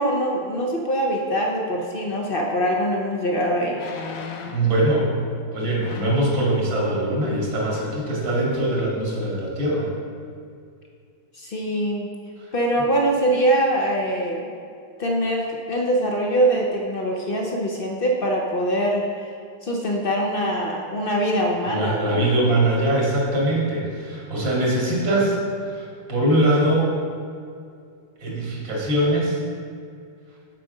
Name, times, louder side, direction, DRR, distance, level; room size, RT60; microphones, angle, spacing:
voice 1, 0.0-3.8 11.3-12.1 12.5-14.5 15.0-19.1 19.6-22.3, right 1 dB, 60° left, 0 dB, 0.5 m, -23 dB
sound 1, 2.7-2.8 3.7-4.7 5.8-6.3 7.2-7.4 7.7-8.0 8.5-8.6, left 5 dB, 90° left, 1.5 m, -37 dB
voice 2, 4.5-5.1 5.5-9.9 21.7-25.4 25.6-26.9 28.2-29.4, right 1 dB, 85° right, -4 dB, 2.8 m, -22 dB
7.5 x 4.9 x 6.4 m, 2.3 s
omnidirectional pair, 2.1 m